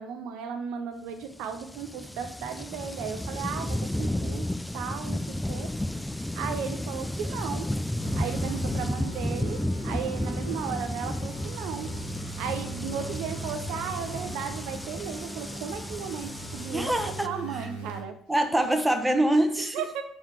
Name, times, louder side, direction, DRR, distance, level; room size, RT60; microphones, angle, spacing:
voice 1, 0.0-5.7 6.0-7.7 8.1-16.9 17.2-18.2 19.7-20.0, right 7 dB, 65° right, 7 dB, 0.5 m, -35 dB
sound 1, 1.2-17.3, left 1 dB, 10° left, 0.3 m, -33 dB
sound 2, 8.0-18.0, right 4 dB, 90° right, 1.2 m, -41 dB
voice 2, 16.7-17.3 18.3-19.8, right 1 dB, 10° right, 6 dB, 1.0 m, -24 dB
4.8 x 4.4 x 4.4 m, 0.65 s
figure-of-eight pair, 50°, 0 cm